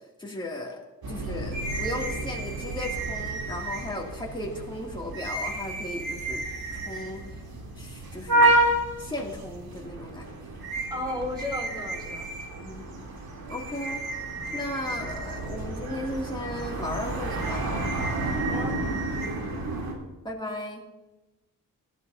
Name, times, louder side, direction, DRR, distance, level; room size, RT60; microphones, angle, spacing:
voice 1, 0.2-0.8 1.1-6.4 6.7-7.4 7.8-8.5 9.0-10.3 12.6-13.1 13.5-14.0 14.5-17.7 20.2-20.8, left 1 dB, 15° left, -2 dB, 2.5 m, -36 dB
sound 1, 1.0-19.9, right 2 dB, 85° right, 3.2 m, -30 dB
voice 2, 10.9-12.3 18.5-18.8, left 1 dB, 10° right, 1 dB, 2.2 m, -33 dB
18.5 x 13.0 x 2.7 m, 1.1 s
wide cardioid pair, 105°, 36 cm